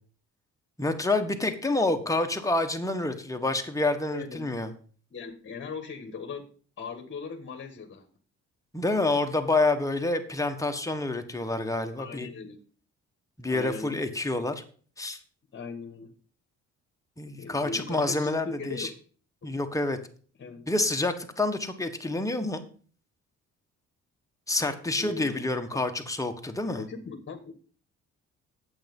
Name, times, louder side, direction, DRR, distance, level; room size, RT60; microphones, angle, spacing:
voice 1, 0.8-4.7 8.7-12.3 13.4-14.6 15.0-15.2 17.2-18.9 19.4-20.0 20.7-22.6 24.5-26.8, left 2 dB, 10° left, 5 dB, 1.5 m, -28 dB
voice 2, 4.1-4.5 5.1-6.5 6.8-8.1 12.0-12.6 13.5-14.0 15.5-16.1 17.4-18.9 19.4-19.5 20.4-20.6 25.0-25.8 26.8-27.5, left 4 dB, 40° left, 5 dB, 1.7 m, -39 dB
8.8 x 7.9 x 5.5 m, 0.43 s
cardioid pair, 90°, 30 cm